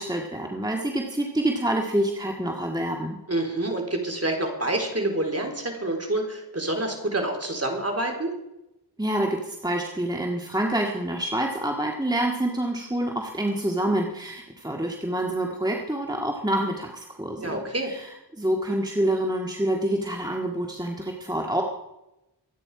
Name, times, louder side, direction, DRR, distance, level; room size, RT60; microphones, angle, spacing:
voice 1, 0.0-3.2 9.0-21.6, right 1 dB, 10° right, 0 dB, 1.9 m, -27 dB
voice 2, 3.3-8.3 17.4-17.9, right 1 dB, 35° right, 2 dB, 3.9 m, -27 dB
23.5 x 9.7 x 4.9 m, 0.92 s
wide cardioid pair, 55°, 44 cm